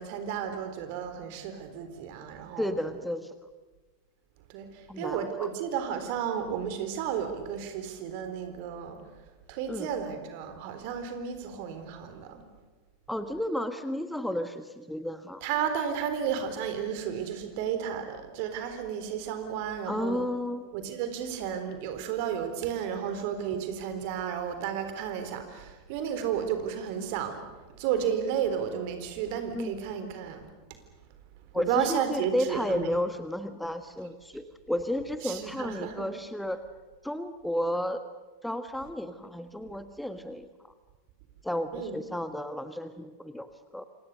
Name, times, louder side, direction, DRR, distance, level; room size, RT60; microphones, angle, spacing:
voice 1, 0.0-2.7 4.5-9.0 9.5-12.4 15.4-20.2 20.7-27.4 27.8-30.5 31.6-32.9 35.2-36.1 41.7-41.9, right 8 dB, 50° right, 8 dB, 4.0 m, -32 dB
voice 2, 2.6-3.3 4.9-5.5 9.7-9.9 13.1-15.4 19.9-20.7 29.5-29.7 31.5-36.6 37.0-38.1 38.4-40.5 41.4-43.8, left 1 dB, 5° left, 10 dB, 1.3 m, -32 dB
28.0 x 26.5 x 6.7 m, 1.3 s
figure-of-eight pair, 85°, 0 cm